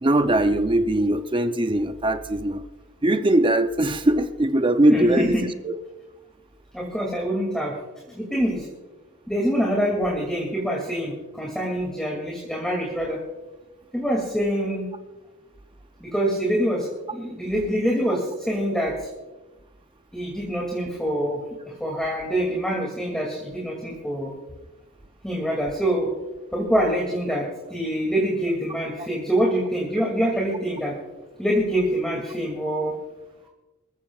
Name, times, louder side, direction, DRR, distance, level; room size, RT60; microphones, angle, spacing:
voice 1, 0.0-2.6 3.0-5.4 5.6-5.7 29.0-29.1, right 1 dB, 25° right, 9 dB, 0.6 m, -20 dB
voice 2, 4.9-5.3 6.7-7.7 8.1-8.7 9.3-13.2 13.9-14.9 16.0-19.1 20.1-21.4 21.6-24.3 25.2-26.1 26.5-30.9 31.4-32.9, equal, 5° left, -2 dB, 2.5 m, -25 dB
26.0 x 15.0 x 2.4 m, 1.1 s
head